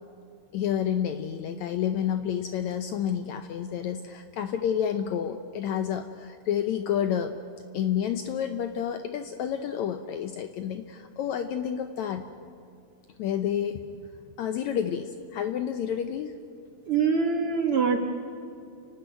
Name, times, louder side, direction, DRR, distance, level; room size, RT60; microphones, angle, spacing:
voice 1, 0.5-7.4 7.7-12.3 13.2-13.9 14.4-16.4, left 9 dB, 75° left, 8 dB, 1.7 m, -29 dB
voice 2, 16.9-18.0, right 5 dB, 60° right, 3 dB, 1.6 m, -24 dB
30.0 x 12.5 x 9.2 m, 2.4 s
omnidirectional pair, 4.0 m